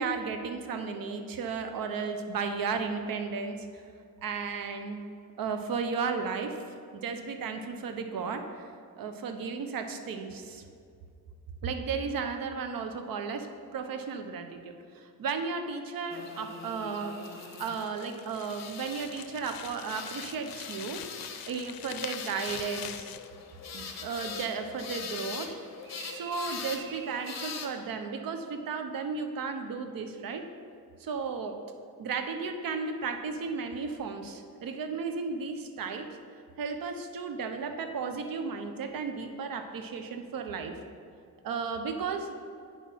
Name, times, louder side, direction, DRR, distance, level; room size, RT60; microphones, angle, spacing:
voice 1, 0.0-3.7 4.2-5.0 5.4-6.6 6.9-8.7 9.0-10.6 11.6-13.5 13.7-14.6 14.9-21.0 21.5-23.2 23.7-25.5 25.8-30.4 31.0-31.6 32.0-36.1 36.6-40.8 41.4-42.3, right 5 dB, 70° right, 6 dB, 1.0 m, -34 dB
sound 1, 16.1-27.7, left 5 dB, 45° left, 1.0 m, -42 dB
sound 2, 17.4-23.3, left 11 dB, 80° left, 0.6 m, -45 dB
8.9 x 6.2 x 5.6 m, 2.4 s
cardioid pair, 100°, 35 cm